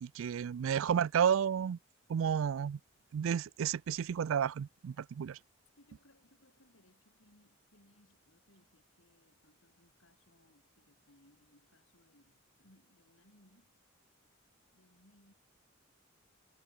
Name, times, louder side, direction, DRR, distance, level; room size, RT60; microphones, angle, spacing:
voice 1, 0.0-1.8 2.1-2.8 3.1-5.4, right 8 dB, 80° right, 0.3 m, -31 dB
voice 2, 5.8-13.8 14.7-15.3, left 1 dB, 75° left, 6.0 m, -67 dB
head